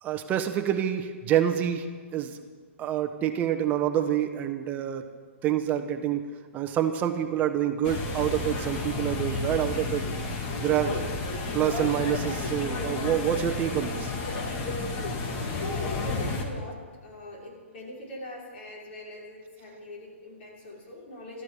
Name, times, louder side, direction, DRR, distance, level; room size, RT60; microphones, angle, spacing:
voice 1, 0.0-1.9 2.1-2.4 2.8-5.1 5.4-6.3 6.5-10.0 10.6-10.9 11.5-14.1, right 10 dB, 25° right, 6 dB, 1.1 m, -27 dB
sound 1, 7.8-16.5, left 3 dB, 35° left, 2.3 m, -31 dB
voice 2, 10.8-11.4 13.2-13.6 14.9-21.4, left 1 dB, 50° left, -4 dB, 6.1 m, -42 dB
13.5 x 12.5 x 7.0 m, 1.5 s
hypercardioid pair, 145°, 7 cm